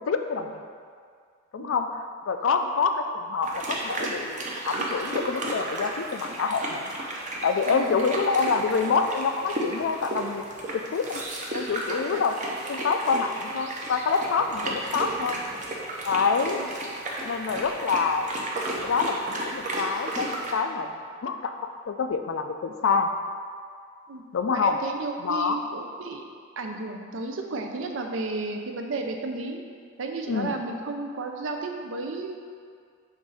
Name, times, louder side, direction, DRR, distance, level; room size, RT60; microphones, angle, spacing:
voice 1, 0.1-0.6 1.5-1.9 2.3-4.4 4.6-6.9 7.4-10.4 10.7-11.3 11.5-12.3 12.7-15.4 16.0-16.6 17.2-18.3 18.7-21.6 21.9-23.1 24.3-24.8 25.2-25.6 30.3-30.5, left 5 dB, 75° left, 6 dB, 0.4 m, -26 dB
sound 1, 3.4-20.5, right 2 dB, 40° right, 0.7 m, -33 dB
voice 2, 7.7-8.3 12.1-12.2 16.5-16.7 24.1-24.2 24.5-26.2 26.6-29.6 30.0-32.4, right 3 dB, 70° right, 3 dB, 0.6 m, -33 dB
7.2 x 2.6 x 5.4 m, 2.1 s
head